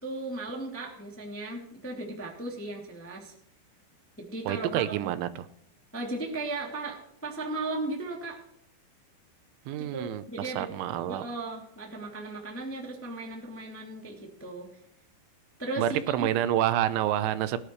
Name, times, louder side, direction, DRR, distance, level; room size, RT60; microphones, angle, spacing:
voice 1, 0.0-3.3 4.2-5.0 5.9-8.4 9.8-10.7 11.0-14.7 15.6-16.3, right 2 dB, 5° left, -1 dB, 1.3 m, -36 dB
voice 2, 4.5-5.5 9.7-11.2 15.8-17.6, right 12 dB, 85° right, 12 dB, 3.2 m, -28 dB
18.5 x 11.5 x 3.2 m, 0.73 s
omnidirectional pair, 5.3 m